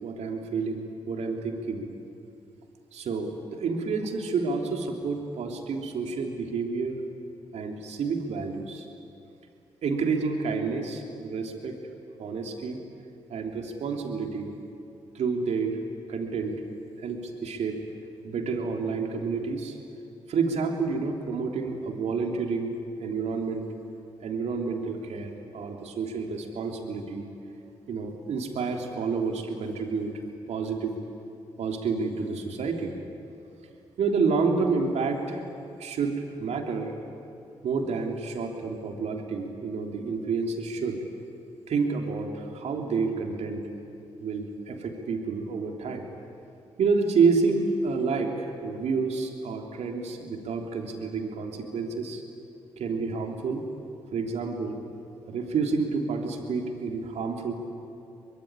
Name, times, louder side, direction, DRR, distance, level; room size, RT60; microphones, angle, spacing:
voice 1, 0.0-1.9 2.9-7.0 7.5-8.9 9.8-11.8 12.2-12.8 13.3-14.5 15.2-15.8 16.1-16.6 17.0-17.8 18.2-19.8 20.3-22.7 23.0-23.7 24.2-27.3 27.9-30.1 30.5-30.9 31.6-33.0 34.0-35.4 35.8-36.9 37.6-41.0 41.7-43.6 44.2-46.0 46.8-52.2 52.8-53.6 54.1-54.8 55.3-57.5, right 4 dB, 65° right, 2 dB, 3.4 m, -29 dB
24.0 x 22.0 x 9.9 m, 2.6 s
hypercardioid pair, 40°, 12 cm